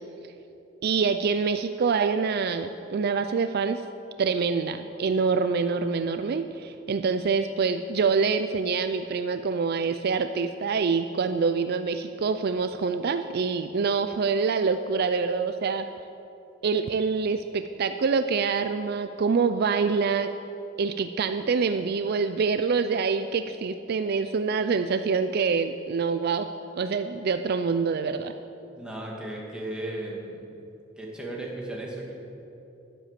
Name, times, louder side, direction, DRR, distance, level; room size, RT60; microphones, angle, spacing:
voice 1, 0.8-3.8 4.2-15.9 16.6-20.3 20.8-26.5 26.8-28.3, right 5 dB, 50° right, 9 dB, 0.4 m, -26 dB
voice 2, 28.7-30.4 31.0-32.1, right 1 dB, 5° right, -3 dB, 2.2 m, -35 dB
11.5 x 10.0 x 7.4 m, 2.9 s
head